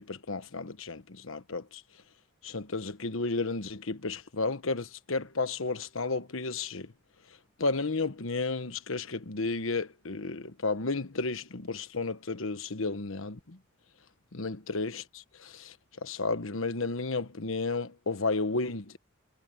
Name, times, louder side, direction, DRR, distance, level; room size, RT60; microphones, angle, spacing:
voice 1, 0.0-1.8 2.4-6.9 7.6-13.6 14.3-15.8 16.0-19.0, left 3 dB, 75° left, 1.2 m, -32 dB
head